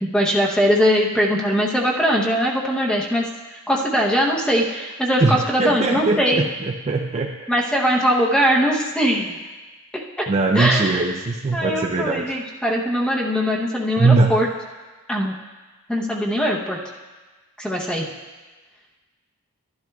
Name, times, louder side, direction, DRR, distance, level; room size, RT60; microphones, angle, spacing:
voice 1, 0.0-3.3 3.7-6.4 7.5-9.4 10.2-10.3 10.5-11.0 11.5-14.5 15.1-15.3 15.9-16.8 17.6-18.0, equal, 5° left, -3 dB, 0.8 m, -21 dB
voice 2, 5.2-7.4 10.3-12.4 14.0-14.4, right 3 dB, 30° right, 1 dB, 0.4 m, -21 dB
12.0 x 11.5 x 2.3 m, 1.3 s
head